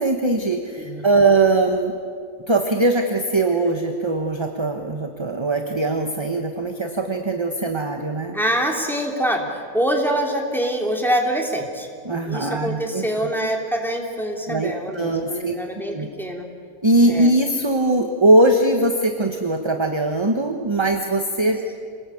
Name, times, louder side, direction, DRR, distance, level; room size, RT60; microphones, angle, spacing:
voice 1, 0.0-1.9 2.5-8.4 12.0-13.1 14.5-15.6 15.9-16.1 16.8-21.6, right 2 dB, 20° right, 4 dB, 1.2 m, -20 dB
voice 2, 8.3-11.9 12.2-16.5 17.1-17.3, right 1 dB, ahead, 0 dB, 3.1 m, -25 dB
27.0 x 20.0 x 8.7 m, 2.1 s
omnidirectional pair, 1.7 m